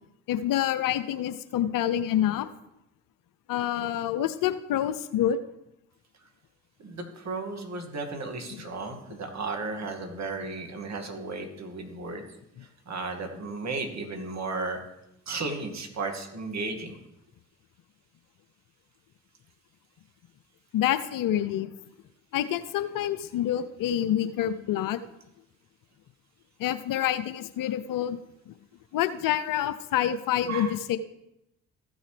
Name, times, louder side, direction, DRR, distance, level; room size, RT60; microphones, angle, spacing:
voice 1, 0.3-2.5 3.5-5.4 20.7-21.7 22.3-25.0 26.6-28.2 28.5-28.6 28.9-31.0, left 11 dB, 65° left, 13 dB, 0.7 m, -27 dB
voice 2, 6.8-12.2 12.9-14.8 15.3-16.9 30.5-30.7, right 3 dB, 50° right, 3 dB, 2.3 m, -34 dB
15.0 x 6.3 x 3.4 m, 0.84 s
hypercardioid pair, 45°, 35 cm